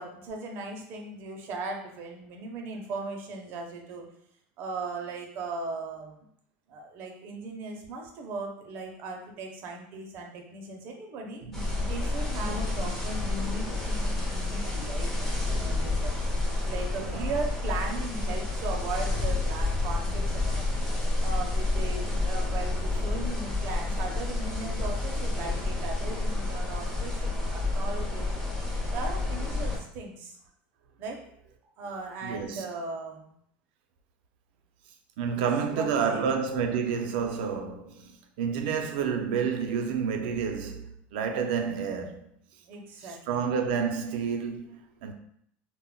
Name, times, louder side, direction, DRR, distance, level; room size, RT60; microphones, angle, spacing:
voice 1, 0.0-4.1 4.6-6.2 6.7-11.4 11.8-16.2 16.6-20.7 21.2-28.3 28.9-30.4 31.0-31.2 31.6-33.3 35.3-35.4 35.7-36.3 42.6-43.4, right 3 dB, 40° right, 0.5 m, -38 dB
voice 2, 11.4-11.8 17.1-17.3 32.2-32.6 35.2-42.3 43.3-45.1, right 6 dB, 90° right, 0.4 m, -30 dB
sound 1, 11.5-29.8, left 2 dB, 5° left, 0.6 m, -29 dB
2.1 x 2.0 x 3.7 m
cardioid pair, 170°, 5 cm